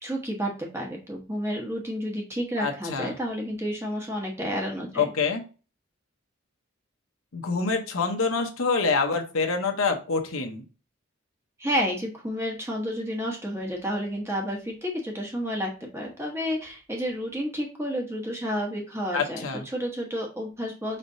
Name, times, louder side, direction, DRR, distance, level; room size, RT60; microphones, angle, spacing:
voice 1, 0.0-5.1 11.6-21.0, equal, 10° right, 0 dB, 1.0 m, -30 dB
voice 2, 2.6-3.1 5.0-5.4 7.3-10.6 19.1-19.6, left 4 dB, 80° left, 4 dB, 0.8 m, -26 dB
5.1 x 3.3 x 2.6 m, 0.34 s
head